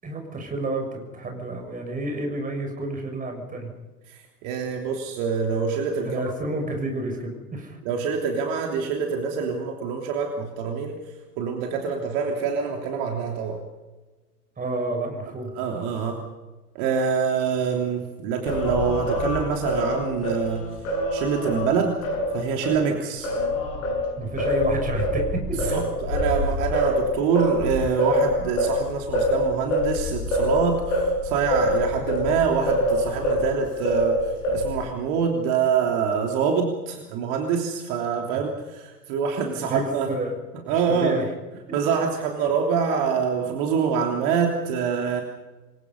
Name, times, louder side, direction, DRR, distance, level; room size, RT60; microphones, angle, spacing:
voice 1, 0.0-3.7 6.0-7.8 14.6-15.5 24.2-25.8 39.7-40.4 40.7-41.3, right 2 dB, 15° right, 3 dB, 6.2 m, -30 dB
voice 2, 4.1-6.2 7.8-13.6 15.5-16.2 16.7-20.6 21.1-22.0 22.3-23.3 25.5-40.1 40.7-41.1 41.7-45.2, right 6 dB, 45° right, 2 dB, 3.3 m, -25 dB
Singing, 18.5-22.8 23.2-33.5 33.9-34.9, left 1 dB, 55° left, 7.6 m, -25 dB
27.5 x 22.5 x 5.5 m, 1.2 s
figure-of-eight pair, 90°, 47 cm